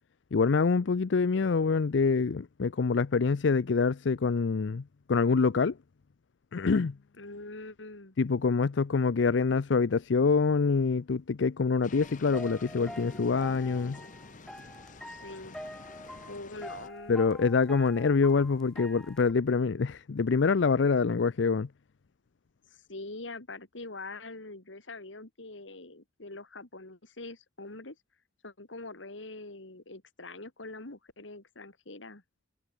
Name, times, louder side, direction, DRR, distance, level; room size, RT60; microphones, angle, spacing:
voice 1, 0.3-5.8 6.5-7.0 8.2-14.0 17.1-21.7, left 4 dB, 70° left, 0.5 m, -26 dB
voice 2, 7.2-8.2 15.1-15.6 16.3-17.2 22.7-28.0 28.4-32.2, left 2 dB, 85° left, 3.0 m, -44 dB
sound 1, 11.8-16.9, left 3 dB, 45° left, 1.0 m, -48 dB
sound 2, 11.9-19.3, equal, 5° left, 1.6 m, -46 dB
head